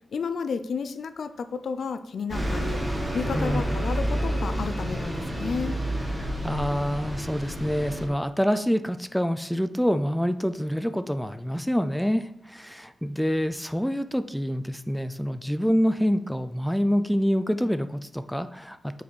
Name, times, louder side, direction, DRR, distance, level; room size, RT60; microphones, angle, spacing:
voice 1, 0.1-2.8 3.1-5.8, left 5 dB, 75° left, 11 dB, 0.4 m, -32 dB
Bus, 2.3-8.1, equal, 15° right, 1.3 m, -29 dB
voice 2, 3.3-3.8 6.2-19.0, equal, ahead, 11 dB, 0.3 m, -26 dB
5.9 x 4.1 x 4.6 m, 0.75 s
wide cardioid pair, 120°, 0 cm